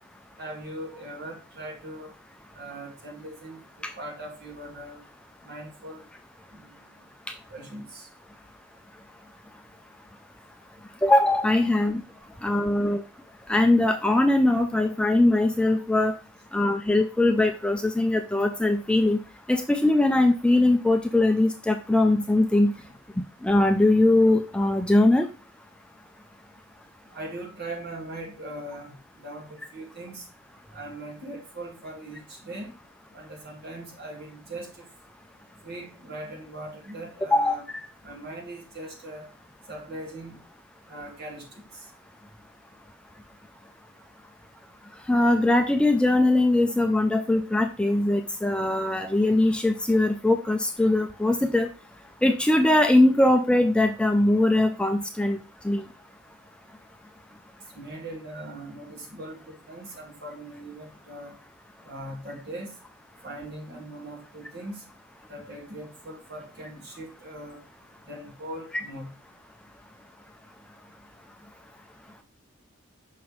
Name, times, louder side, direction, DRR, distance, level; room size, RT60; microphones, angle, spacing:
voice 1, 0.4-2.1 2.5-3.6 4.0-5.0 5.4-6.0 6.5-6.7 7.5-8.1 12.7-12.8 22.7-22.8 27.1-30.3 30.7-32.7 33.1-34.7 35.6-37.6 38.0-39.2 39.7-40.4 40.9-41.8 57.7-61.3 61.8-62.7 63.2-64.8 65.3-67.6 68.1-69.1, right 1 dB, 50° right, 0 dB, 2.0 m, -40 dB
voice 2, 11.0-12.0 12.4-13.0 13.5-16.1 16.5-19.2 19.5-22.7 23.4-25.3 37.3-37.8 45.1-51.7 52.2-55.4 55.6-55.8, left 2 dB, 5° left, 5 dB, 0.3 m, -21 dB
6.0 x 5.7 x 3.1 m, 0.34 s
head